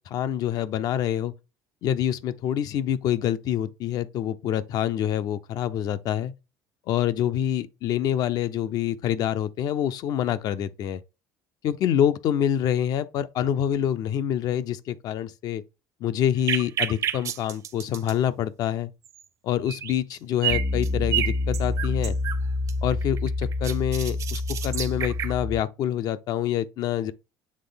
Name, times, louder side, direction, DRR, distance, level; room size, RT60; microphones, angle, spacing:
voice 1, 0.1-1.3 1.8-6.3 6.9-11.0 11.6-15.6 16.0-18.9 19.4-22.2 22.8-27.1, left 10 dB, 55° left, 0.6 m, -26 dB
sound 1, 16.5-18.1 19.1-19.2 19.7-20.2 20.4-22.4 22.7-25.3, right 11 dB, 45° right, 0.7 m, -29 dB
Piano, 20.5-25.6, left 2 dB, 10° left, 0.3 m, -28 dB
7.4 x 3.4 x 3.9 m
supercardioid pair, 110°, 8 cm